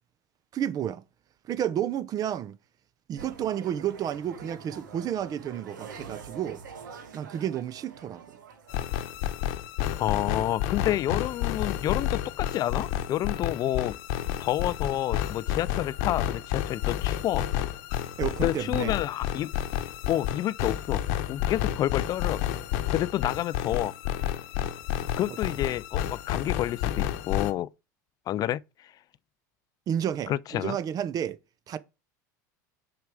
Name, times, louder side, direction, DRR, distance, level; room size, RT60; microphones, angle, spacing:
voice 1, 0.5-1.0 1.5-2.6 3.1-6.6 7.1-8.2 18.2-18.9 25.3-25.4 29.9-31.4 31.7-31.8, right 10 dB, 40° right, 0.6 m, -31 dB
sound 1, 3.2-9.3, right 6 dB, 85° right, 1.3 m, -46 dB
sound 2, 8.7-27.5, left 11 dB, 65° left, 0.9 m, -30 dB
voice 2, 10.0-14.0 14.4-17.4 18.4-19.5 20.1-21.0 21.3-22.4 22.9-23.9 25.2-27.7 28.3-28.9 30.3-30.8, left 13 dB, 40° left, 0.3 m, -29 dB
6.3 x 4.8 x 4.8 m
hypercardioid pair, 95°, 10 cm